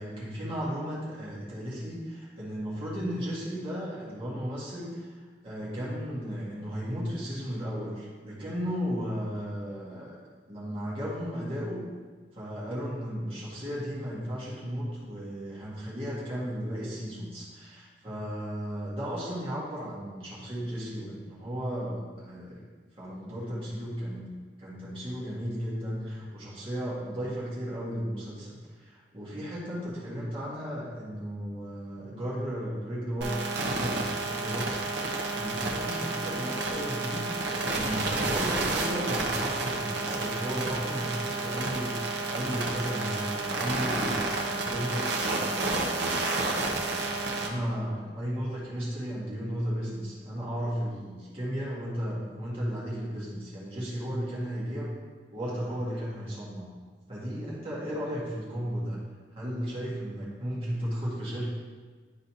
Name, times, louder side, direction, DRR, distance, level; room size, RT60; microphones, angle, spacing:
voice 1, 0.0-10.1 10.5-11.8 12.3-22.6 23.0-24.3 24.6-34.8 35.1-54.9 55.3-56.7 57.1-59.0 59.3-61.5, equal, 30° right, -8 dB, 1.8 m, -35 dB
sound 1, 33.2-47.5, right 2 dB, 75° right, 0.9 m, -30 dB
11.0 x 4.0 x 2.9 m, 1.5 s
head